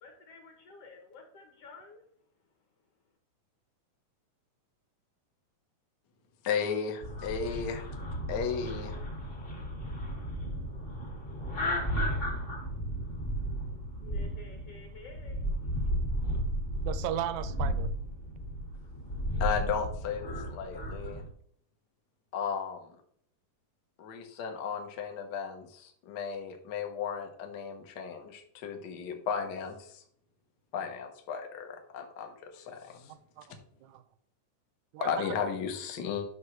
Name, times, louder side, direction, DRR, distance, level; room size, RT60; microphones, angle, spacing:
voice 1, 0.0-2.0 14.0-15.5, left 3 dB, 60° left, 3 dB, 1.8 m, -51 dB
voice 2, 6.4-8.0 8.3-9.0 19.4-21.2 22.3-22.8 24.0-30.0 30.7-33.1 35.0-36.2, left 6 dB, 85° left, 4 dB, 0.9 m, -35 dB
sound 1, 7.0-21.3, equal, 45° left, 0.7 m, -34 dB
voice 3, 16.8-17.9 33.4-34.0 34.9-35.3, right 11 dB, 80° right, 14 dB, 1.7 m, -36 dB
10.0 x 6.3 x 3.2 m, 0.64 s
omnidirectional pair, 3.6 m